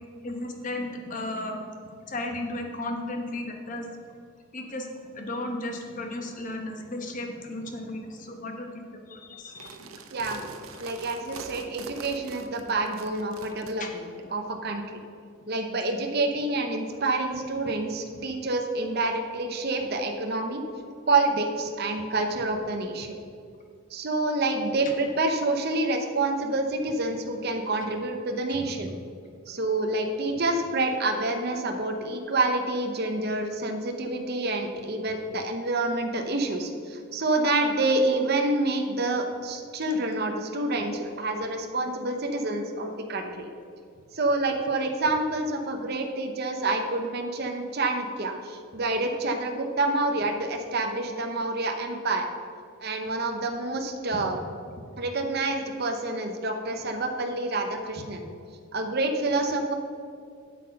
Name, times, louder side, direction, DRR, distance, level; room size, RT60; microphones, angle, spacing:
voice 1, 0.2-1.6 2.1-3.9 4.5-4.9 5.1-9.9 13.8-13.9 28.5-28.7 54.1-54.2, left 1 dB, 40° left, 3 dB, 1.1 m, -34 dB
sound 1, 9.5-13.7, right 4 dB, 80° right, 0.8 m, -43 dB
voice 2, 10.8-14.0 14.3-14.8 15.5-20.6 21.1-23.2 23.9-28.9 29.5-43.5 44.1-52.3 52.8-54.4 55.0-58.2 58.7-59.7, right 2 dB, 50° right, 4 dB, 0.8 m, -27 dB
8.0 x 7.6 x 5.4 m, 2.3 s
head